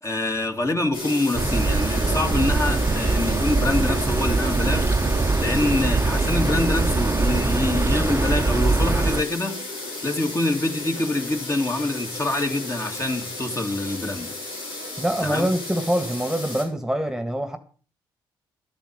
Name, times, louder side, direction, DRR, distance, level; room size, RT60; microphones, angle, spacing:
voice 1, 0.0-4.9 5.4-14.3 15.2-15.5, left 2 dB, 25° left, 2.7 m, -25 dB
sound 1, 0.9-16.6, left 2 dB, 90° left, 5.2 m, -33 dB
sound 2, 1.3-9.2, right 3 dB, 25° right, 1.0 m, -22 dB
voice 2, 15.0-17.6, right 1 dB, 5° right, 1.9 m, -24 dB
13.0 x 9.1 x 7.0 m
hypercardioid pair, 45°, 11 cm